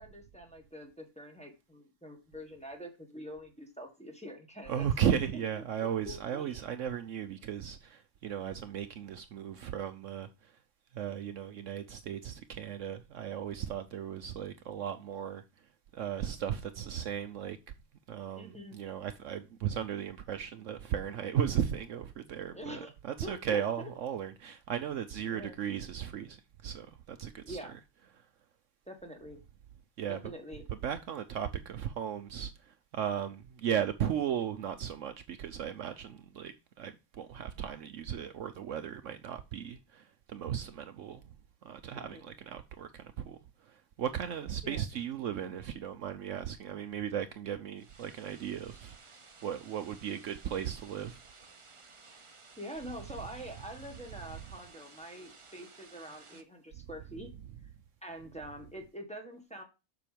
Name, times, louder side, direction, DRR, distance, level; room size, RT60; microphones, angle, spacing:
voice 1, 0.0-6.6 18.4-18.8 22.5-22.9 23.2-23.9 25.3-25.6 27.4-27.8 28.9-29.4 30.1-30.6 41.9-42.3 44.6-44.8 52.0-52.2 52.6-57.3 58.0-59.6, equal, 5° left, 1.6 m, -45 dB
voice 2, 4.7-10.3 10.9-15.4 15.9-17.6 18.1-27.6 30.0-30.2 30.7-41.2 41.6-43.4 43.7-48.9 49.4-51.2, right 9 dB, 65° right, 0.9 m, -36 dB
sound 1, 47.8-56.4, right 4 dB, 30° right, 0.7 m, -56 dB
7.4 x 6.2 x 5.1 m
omnidirectional pair, 1.5 m